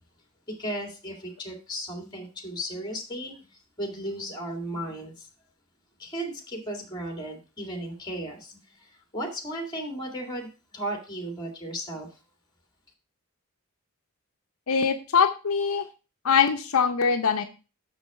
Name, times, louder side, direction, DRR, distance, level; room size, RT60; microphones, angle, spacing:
voice 1, 0.5-5.3 6.0-12.1, right 1 dB, 20° left, 3 dB, 2.1 m, -35 dB
voice 2, 14.7-15.8 16.2-17.4, left 6 dB, 70° left, 6 dB, 0.6 m, -22 dB
6.4 x 6.1 x 4.8 m, 0.32 s
head